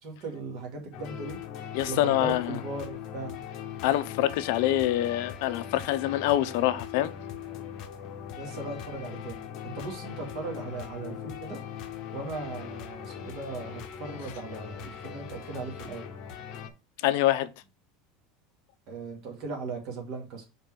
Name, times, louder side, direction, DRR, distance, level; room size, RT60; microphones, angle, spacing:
voice 1, 0.0-3.4 8.3-9.5 9.7-16.1 18.9-20.4, right 3 dB, 40° right, 2.3 m, -38 dB
sound 1, 0.9-16.7, left 8 dB, 40° left, 0.9 m, -40 dB
voice 2, 1.7-2.6 3.8-7.1 17.0-17.5, left 14 dB, 60° left, 0.6 m, -25 dB
5.2 x 4.1 x 4.4 m
supercardioid pair, 175°, 0 cm